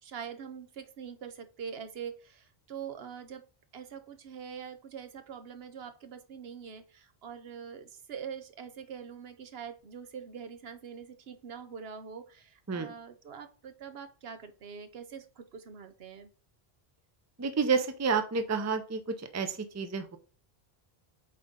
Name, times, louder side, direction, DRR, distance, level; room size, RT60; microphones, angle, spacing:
voice 1, 0.0-3.4 3.7-16.3, right 7 dB, 75° right, 9 dB, 1.0 m, -44 dB
voice 2, 17.4-20.2, right 5 dB, 20° right, 8 dB, 0.5 m, -30 dB
7.6 x 4.0 x 3.7 m, 0.38 s
omnidirectional pair, 1.0 m